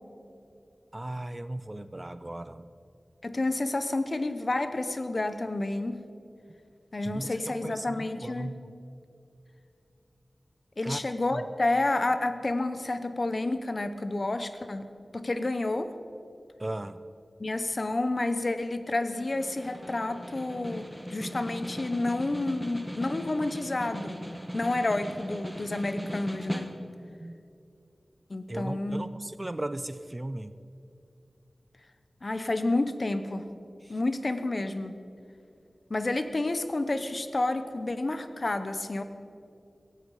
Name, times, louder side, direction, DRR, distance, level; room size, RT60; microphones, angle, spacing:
voice 1, 0.9-2.7 7.1-8.6 10.8-11.4 16.6-17.0 27.2-27.4 28.5-30.5 33.9-34.0, right 1 dB, 25° right, 13 dB, 0.5 m, -37 dB
voice 2, 3.2-6.0 6.9-8.5 10.8-15.9 17.4-24.2 24.5-26.7 28.3-29.0 32.2-33.5 33.9-35.0 35.9-39.0, left 2 dB, 45° left, 10 dB, 0.9 m, -30 dB
Snare drum, 19.1-27.1, equal, ahead, 1.3 m, -39 dB
17.0 x 15.5 x 4.9 m, 2.6 s
wide cardioid pair, 70°, 0 cm